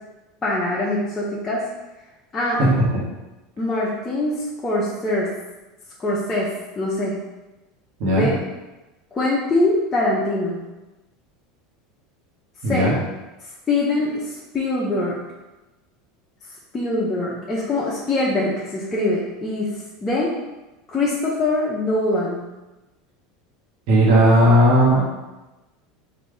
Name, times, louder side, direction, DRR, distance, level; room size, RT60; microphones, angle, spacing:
voice 1, 0.4-1.6 2.3-2.6 3.6-5.3 6.0-6.5 6.7-7.1 8.1-8.4 9.1-10.6 12.6-12.9 13.7-15.2 16.7-19.7 20.0-20.3 20.9-22.4, left 2 dB, 20° left, -6 dB, 0.7 m, -23 dB
voice 2, 12.6-12.9 23.9-25.0, equal, 65° right, -6 dB, 1.3 m, -15 dB
3.9 x 2.7 x 3.2 m, 1.1 s
supercardioid pair, 110°, 0 cm